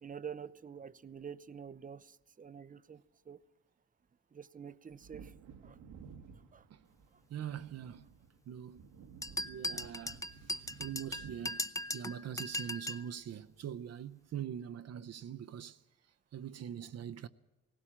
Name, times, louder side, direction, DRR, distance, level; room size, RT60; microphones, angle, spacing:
voice 1, 0.0-3.4 4.3-5.3 5.6-5.8 6.5-6.6, right 7 dB, 25° right, 0.8 m, -47 dB
Wind / Thunder, 4.9-13.2 13.4-13.5, right 6 dB, 85° right, 1.5 m, -55 dB
voice 2, 7.3-8.1 8.5-8.9 9.4-10.2 10.5-11.6 11.9-15.8 16.3-17.3, right 9 dB, 55° right, 0.8 m, -43 dB
sound 1, 9.2-13.1, left 1 dB, 10° left, 0.7 m, -38 dB
18.0 x 17.0 x 8.7 m
cardioid pair, 90°, 30 cm